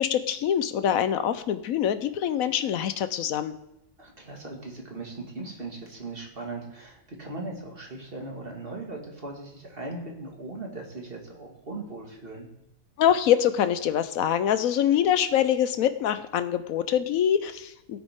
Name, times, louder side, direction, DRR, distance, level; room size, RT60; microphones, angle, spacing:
voice 1, 0.0-3.5 13.0-18.0, left 10 dB, 80° left, 12 dB, 1.1 m, -24 dB
voice 2, 4.0-12.5, right 2 dB, 40° right, 0 dB, 2.2 m, -39 dB
16.5 x 9.3 x 3.6 m, 0.86 s
omnidirectional pair, 1.4 m